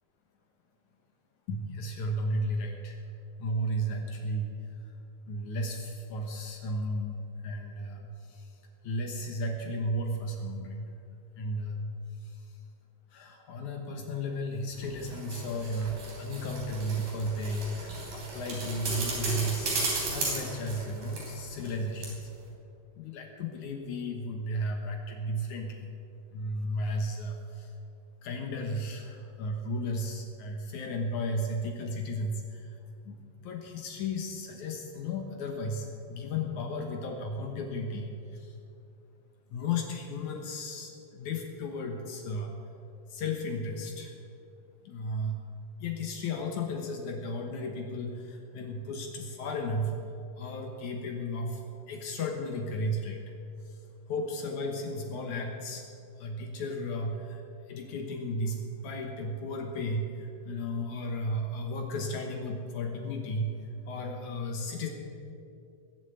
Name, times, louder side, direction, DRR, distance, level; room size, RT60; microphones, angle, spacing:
voice 1, 1.5-3.0 3.4-4.5 5.3-8.5 8.8-10.9 11.4-11.9 12.2-12.4 13.1-19.8 20.1-22.3 23.0-25.9 26.3-27.7 28.2-32.7 33.1-38.5 39.5-42.6 43.1-44.2 44.8-45.4 45.8-50.0 50.4-51.6 51.9-53.3 54.1-55.9 56.2-57.4 57.7-63.5 63.9-64.9, left 1 dB, 70° left, 2 dB, 2.6 m, -34 dB
sound 1, 14.8-21.8 22.0-22.1, right 2 dB, 90° right, 5.1 m, -35 dB
20.0 x 8.2 x 8.1 m, 2.6 s
omnidirectional pair, 3.6 m